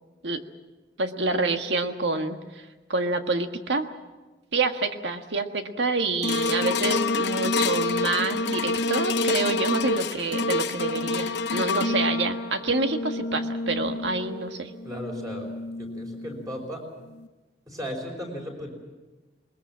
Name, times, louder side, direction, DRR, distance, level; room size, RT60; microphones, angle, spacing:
voice 1, 1.0-2.4 2.9-3.9 4.5-14.7, right 3 dB, 90° right, 6 dB, 1.6 m, -27 dB
sound 1, 6.2-16.6 17.2-17.3, left 3 dB, 75° left, 0.8 m, -28 dB
voice 2, 14.8-15.5 15.8-16.8 17.7-18.7, equal, 20° right, 1 dB, 5.3 m, -35 dB
21.0 x 21.0 x 7.4 m, 1.2 s
head